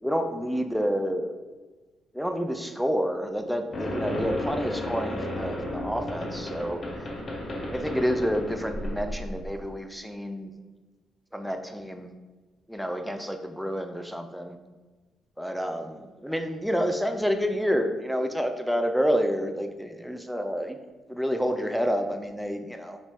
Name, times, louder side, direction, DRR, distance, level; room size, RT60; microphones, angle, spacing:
voice 1, 0.0-1.3 2.1-7.1 7.7-10.5 11.3-12.1 12.7-14.6 15.4-20.8 21.1-23.0, equal, ahead, 6 dB, 0.4 m, -29 dB
sound 1, 3.7-9.7, left 1 dB, 40° left, 0.8 m, -33 dB
5.1 x 2.7 x 3.5 m, 1.3 s
cardioid pair, 90°, 0 cm